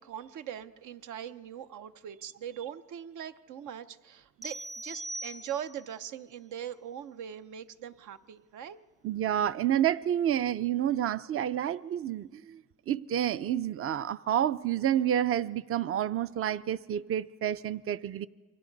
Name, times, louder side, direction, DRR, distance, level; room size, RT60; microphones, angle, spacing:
voice 1, 0.0-8.8, right 9 dB, 80° right, 0.8 m, -41 dB
sound 1, 4.4-5.9, right 1 dB, ahead, 0.5 m, -41 dB
voice 2, 9.0-18.3, right 10 dB, 50° right, 0.5 m, -29 dB
28.5 x 24.0 x 4.0 m
cardioid pair, 90°, 30 cm